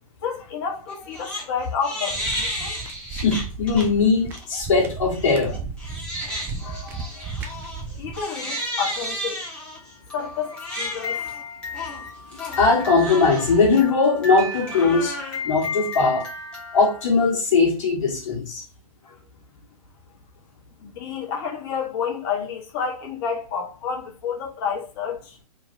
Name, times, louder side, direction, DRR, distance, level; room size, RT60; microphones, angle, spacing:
voice 1, 0.2-2.8 8.0-9.4 10.1-11.2 20.8-25.4, left 6 dB, 40° left, 1.1 m, -30 dB
Crying sobbing, 0.9-1.4 1.8-3.9 4.3-4.6 5.1-17.1, left 1 dB, 5° left, 1.2 m, -32 dB
sound 1, 2.1-8.2, right 4 dB, 10° right, 0.3 m, -35 dB
voice 2, 3.1-5.6 6.6-7.3 12.4-15.2 15.4-16.2 16.7-18.6, left 4 dB, 55° left, 1.3 m, -20 dB
3.2 x 2.6 x 2.6 m
figure-of-eight pair, 120°, 20 cm